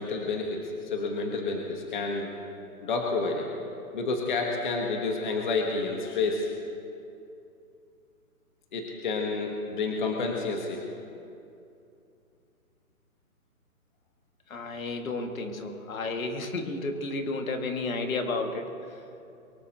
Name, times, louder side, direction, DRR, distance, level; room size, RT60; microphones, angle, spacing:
voice 1, 0.0-2.3 2.8-3.5 3.9-6.5 8.7-10.8, left 3 dB, 35° left, 1 dB, 1.3 m, -29 dB
voice 2, 14.5-18.7, left 3 dB, 65° left, 3 dB, 2.1 m, -32 dB
23.5 x 19.5 x 2.9 m, 2.6 s
hypercardioid pair, 175°, 44 cm